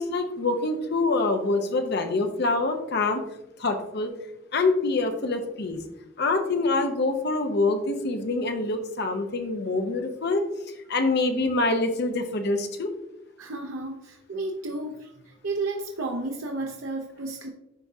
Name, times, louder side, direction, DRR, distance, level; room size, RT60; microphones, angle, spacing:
voice 1, 0.0-3.2 3.6-4.1 4.5-5.8 6.2-10.4 10.9-12.9, left 3 dB, 55° left, 6 dB, 0.8 m, -25 dB
voice 2, 13.4-17.5, right 2 dB, 85° right, 1 dB, 0.7 m, -32 dB
10.5 x 3.7 x 2.7 m, 0.87 s
head